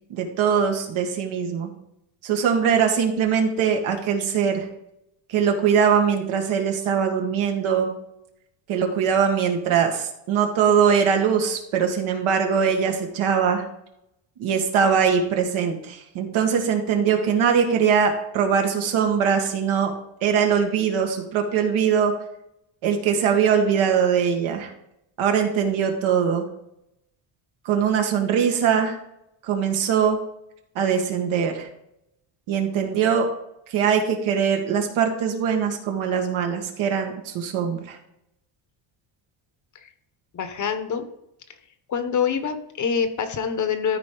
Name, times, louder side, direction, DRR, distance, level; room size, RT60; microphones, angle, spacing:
voice 1, 0.1-1.7 2.2-4.7 5.3-7.9 8.7-13.6 14.4-19.9 20.2-22.1 22.8-24.7 25.2-26.5 27.7-29.0 29.4-30.2 30.8-31.7 32.5-33.3 33.7-38.0, right 7 dB, 80° right, 3 dB, 1.8 m, -22 dB
voice 2, 40.3-41.1 41.9-44.0, left 7 dB, 40° left, 9 dB, 0.9 m, -25 dB
13.0 x 4.7 x 3.8 m, 0.81 s
cardioid pair, 145°, 47 cm